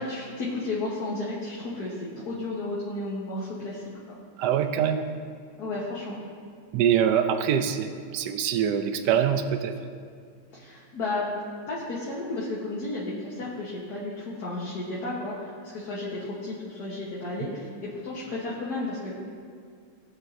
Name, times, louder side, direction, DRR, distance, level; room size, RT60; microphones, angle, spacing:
voice 1, 0.0-4.2 5.6-6.2 10.5-11.3 11.7-19.1, left 2 dB, 50° left, -6 dB, 1.7 m, -33 dB
voice 2, 4.4-5.1 6.7-9.7, right 8 dB, 70° right, 8 dB, 1.1 m, -24 dB
17.0 x 8.1 x 2.7 m, 2.2 s
omnidirectional pair, 2.3 m